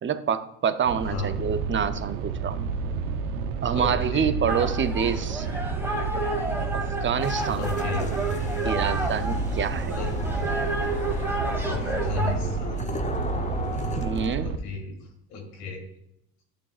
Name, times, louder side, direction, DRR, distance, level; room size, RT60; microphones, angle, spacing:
voice 1, 0.0-2.6 3.6-5.5 6.7-7.6 8.6-10.0 14.0-14.5, right 7 dB, 25° right, 11 dB, 0.6 m, -27 dB
sound 1, 0.8-14.6, right 5 dB, 85° right, 0.7 m, -30 dB
voice 2, 3.7-4.3 7.6-8.1 9.9-10.1 11.6-12.9 14.4-15.0 15.3-15.8, left 4 dB, 85° left, 1 dB, 2.3 m, -33 dB
sound 2, 4.5-12.3, right 2 dB, 5° right, 1.6 m, -31 dB
sound 3, 7.2-14.3, left 2 dB, 15° left, 0.8 m, -34 dB
12.0 x 6.2 x 2.4 m, 0.77 s
supercardioid pair, 80°, 43 cm